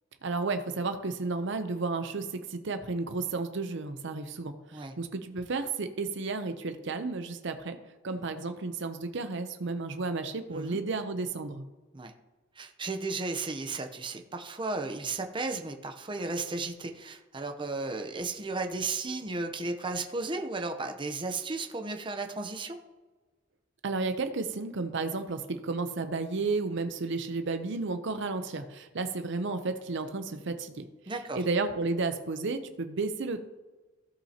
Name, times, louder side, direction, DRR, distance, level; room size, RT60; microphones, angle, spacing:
voice 1, 0.2-7.8 8.0-11.6 23.8-30.9 31.4-33.4, right 3 dB, 60° right, 8 dB, 0.6 m, -32 dB
voice 2, 12.6-22.8 31.1-31.4, right 3 dB, 25° right, 5 dB, 0.7 m, -34 dB
16.0 x 5.6 x 2.8 m, 1.2 s
head